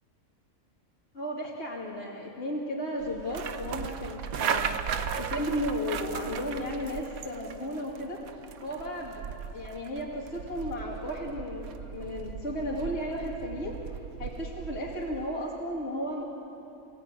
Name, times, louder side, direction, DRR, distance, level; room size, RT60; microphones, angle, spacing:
voice 1, 1.1-4.7 5.2-8.2 8.6-9.2 9.5-13.8 14.2-16.2, equal, 50° left, -4 dB, 2.7 m, -34 dB
sound 1, 3.0-15.3, right 7 dB, 85° right, 1.4 m, -37 dB
29.5 x 17.5 x 9.0 m, 2.8 s
omnidirectional pair, 1.4 m